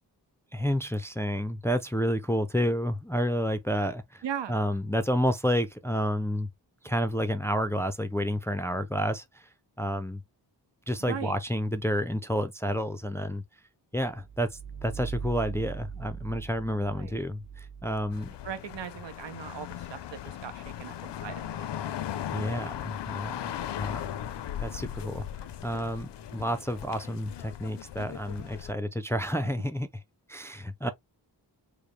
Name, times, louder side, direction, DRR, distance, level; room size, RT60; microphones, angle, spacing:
voice 1, 0.5-4.2 4.5-6.5 6.8-9.5 9.8-10.2 10.9-13.4 13.9-14.5 14.8-18.3 22.3-23.3 23.8-24.1 24.6-25.3 25.6-29.9 30.3-30.9, equal, 5° left, 0.3 m, -30 dB
voice 2, 4.2-4.6 11.1-11.3 16.8-17.1 18.4-21.7, right 9 dB, 90° right, 0.8 m, -38 dB
sound 1, 14.1-18.7, right 6 dB, 45° right, 0.7 m, -40 dB
sound 2, 18.1-28.7, left 10 dB, 75° left, 0.5 m, -38 dB
4.9 x 2.0 x 3.2 m
wide cardioid pair, 160°, 42 cm